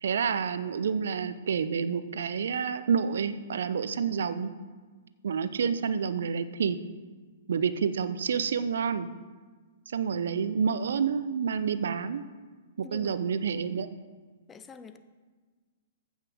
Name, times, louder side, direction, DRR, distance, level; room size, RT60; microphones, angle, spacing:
voice 1, 0.0-4.5 5.2-6.8 7.5-9.1 9.9-12.2 12.8-13.9, right 6 dB, 65° right, 13 dB, 0.5 m, -29 dB
voice 2, 12.8-13.6 14.5-15.0, left 4 dB, 15° left, 10 dB, 0.6 m, -47 dB
14.5 x 5.6 x 3.6 m, 1.4 s
figure-of-eight pair, 115°, 0 cm